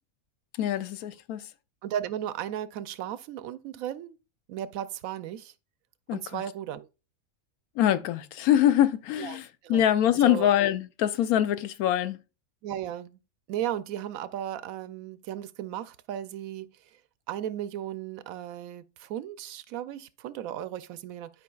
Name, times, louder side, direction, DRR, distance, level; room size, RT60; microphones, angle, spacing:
voice 1, 0.6-1.5 6.1-6.4 7.8-12.2, left 11 dB, 90° left, 1.1 m, -24 dB
voice 2, 1.8-4.2 4.5-5.5 6.1-6.9 9.2-9.8 10.2-10.5 12.6-13.2 13.5-16.7 17.3-21.3, right 11 dB, 75° right, 1.0 m, -35 dB
11.5 x 5.0 x 2.3 m
omnidirectional pair, 1.5 m